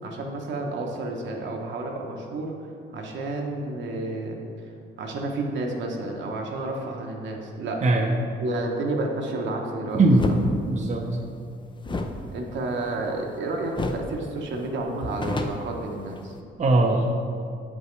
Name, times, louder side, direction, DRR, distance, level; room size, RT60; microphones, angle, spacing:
voice 1, 0.0-2.5 2.9-4.4 5.0-7.8 8.4-10.0 11.9-12.1 12.3-16.3, right 2 dB, 70° right, 1 dB, 1.0 m, -30 dB
voice 2, 7.8-8.1 9.9-10.2 10.7-11.1 16.6-17.1, right 2 dB, 35° right, 1 dB, 0.7 m, -20 dB
sound 1, 10.1-10.4 11.8-13.4 13.7-14.1 14.4-14.5 14.9-16.4, left 3 dB, 25° left, 0.5 m, -31 dB
7.8 x 5.5 x 3.2 m, 2.3 s
cardioid pair, 90°, 20 cm